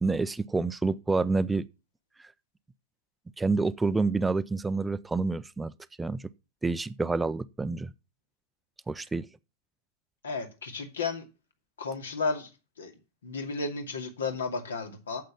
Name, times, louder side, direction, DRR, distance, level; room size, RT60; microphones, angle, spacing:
voice 1, 0.0-1.7 3.4-5.7 6.0-6.2 6.6-7.9 8.9-9.3, right 3 dB, 10° right, 0.5 m, -28 dB
voice 2, 10.2-11.3 11.8-12.5 12.8-12.9 13.2-15.2, left 4 dB, 65° left, 2.3 m, -33 dB
9.1 x 7.7 x 7.3 m
figure-of-eight pair, 90°, 0 cm